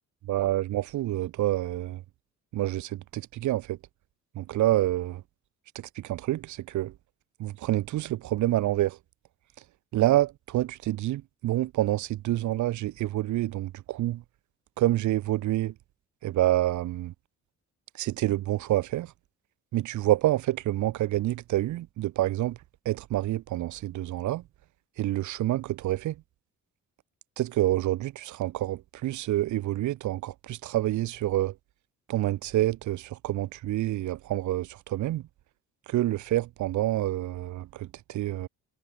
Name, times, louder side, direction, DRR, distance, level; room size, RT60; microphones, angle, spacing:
voice 1, 0.3-2.0 2.5-3.8 4.3-5.2 5.7-6.9 7.4-9.0 9.9-14.2 14.8-15.7 16.2-17.1 17.9-19.1 19.7-22.6 22.8-24.4 25.0-26.2 27.4-31.5 32.1-35.3 35.9-38.5, right 15 dB, 75° right, 0.8 m, -27 dB
cardioid pair, 90°, 30 cm